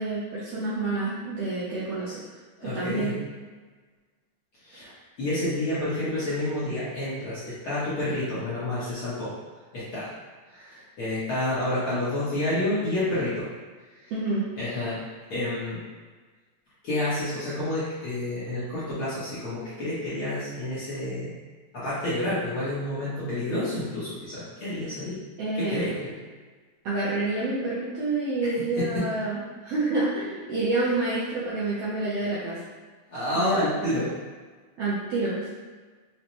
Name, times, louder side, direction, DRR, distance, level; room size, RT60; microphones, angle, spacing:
voice 1, 0.0-2.2 2.6-3.2 14.1-14.5 25.4-25.9 26.8-32.6 33.3-33.9 34.8-35.6, right 2 dB, 75° right, -9 dB, 1.5 m, -28 dB
voice 2, 2.6-3.1 4.6-4.9 5.2-9.3 9.7-10.1 10.5-13.5 14.0-14.1 14.6-15.8 16.8-21.3 21.7-25.2 25.6-26.2 28.8-29.0 33.1-34.1, left 1 dB, 60° left, -12 dB, 1.5 m, -29 dB
5.3 x 2.2 x 3.0 m, 1.4 s
omnidirectional pair, 3.5 m